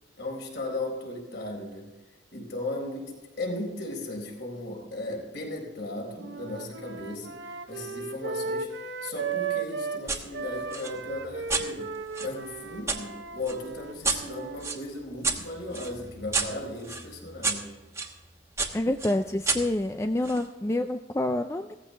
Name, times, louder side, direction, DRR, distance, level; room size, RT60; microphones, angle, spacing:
voice 1, 0.2-1.9 2.3-11.9 12.2-17.8, left 2 dB, 55° left, 0 dB, 4.3 m, -36 dB
sound 1, 6.2-10.0 10.3-14.7, right 5 dB, 60° right, 0.9 m, -36 dB
sound 2, 10.1-10.2 10.7-13.0 13.5-18.1 18.6-20.5, right 4 dB, 15° right, 1.2 m, -32 dB
voice 2, 18.7-21.7, left 1 dB, 15° left, 7 dB, 0.4 m, -27 dB
16.5 x 15.0 x 3.3 m, 1.1 s
head